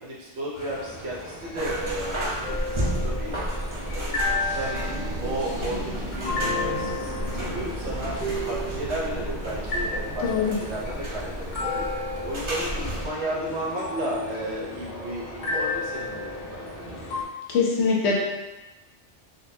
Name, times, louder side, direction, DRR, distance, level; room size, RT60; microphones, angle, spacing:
voice 1, 0.0-3.4 3.8-4.9 5.2-8.2 8.5-11.9 12.2-16.6, right 1 dB, 65° right, -5 dB, 1.0 m, -33 dB
sound 1, 0.6-17.2, left 2 dB, 50° left, 0.6 m, -33 dB
sound 2, 1.6-13.1, right 1 dB, 35° right, 0.5 m, -32 dB
sound 3, 4.3-13.2 13.4-14.3, right 1 dB, 15° right, 1.3 m, -39 dB
voice 2, 10.2-10.6 17.5-18.1, left 5 dB, 80° left, -2 dB, 0.9 m, -22 dB
3.8 x 2.2 x 2.6 m, 1.1 s
omnidirectional pair, 1.2 m